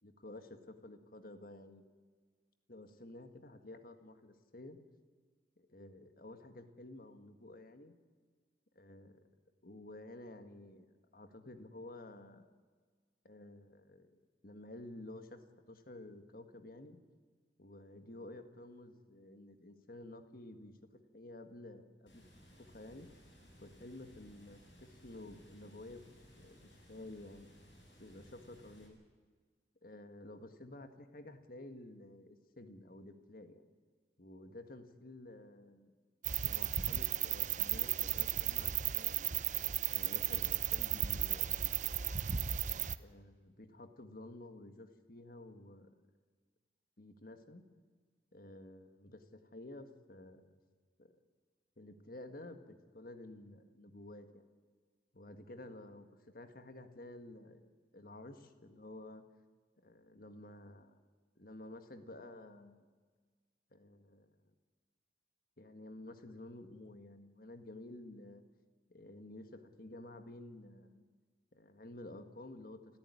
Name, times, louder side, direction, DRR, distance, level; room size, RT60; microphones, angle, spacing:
voice 1, 0.0-1.8 2.7-4.8 5.6-8.0 8.8-9.2 9.6-12.5 13.2-14.2 14.4-17.0 17.6-22.2 22.6-23.1 23.6-26.1 26.4-27.5 28.0-29.0 29.8-33.7 34.2-35.9 36.4-39.3 39.9-41.7 43.0-45.9 47.0-47.6 48.3-50.5 51.0-51.2 51.8-54.4 55.1-56.1 56.3-59.2 59.8-61.0 61.4-62.9 63.7-64.3 65.6-68.4 68.9-71.0 71.5-72.8, left 1 dB, 50° left, 8 dB, 1.8 m, -52 dB
Water, 22.1-28.9, equal, 80° left, 7.4 m, -60 dB
sound 1, 36.2-42.9, right 11 dB, 40° right, 0.7 m, -35 dB
29.0 x 14.0 x 9.9 m, 1.5 s
head